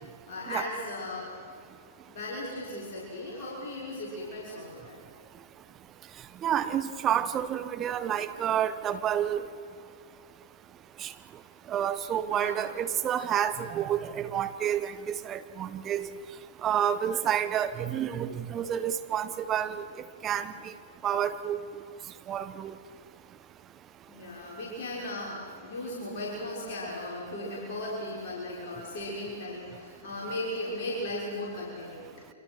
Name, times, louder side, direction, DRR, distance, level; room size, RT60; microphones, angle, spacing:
voice 1, 0.3-1.4 2.0-5.0 12.3-12.6 24.1-32.3, left 1 dB, 50° left, -4 dB, 6.1 m, -37 dB
voice 2, 6.4-9.5 11.0-11.1 11.7-16.1 16.6-19.8 20.2-20.7 21.0-21.6 22.3-22.7, right 9 dB, 25° right, 10 dB, 1.3 m, -29 dB
30.0 x 26.0 x 6.3 m, 2.4 s
figure-of-eight pair, 105°, 0 cm